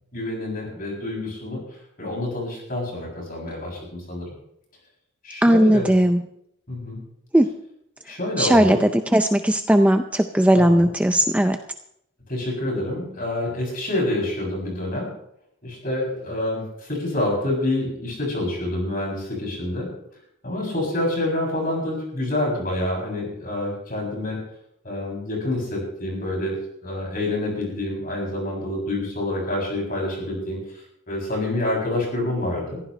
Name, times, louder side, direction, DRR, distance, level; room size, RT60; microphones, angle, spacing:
voice 1, 0.1-1.6 2.0-4.3 5.2-5.9 6.7-7.0 8.0-8.8 10.5-10.9 12.3-15.1 15.6-19.9 20.4-24.4 24.8-32.8, left 1 dB, 40° left, -2 dB, 7.6 m, -27 dB
voice 2, 5.4-6.2 7.3-7.5 8.4-11.6, right 1 dB, 5° right, 7 dB, 0.5 m, -17 dB
22.0 x 15.0 x 3.3 m, 0.73 s
head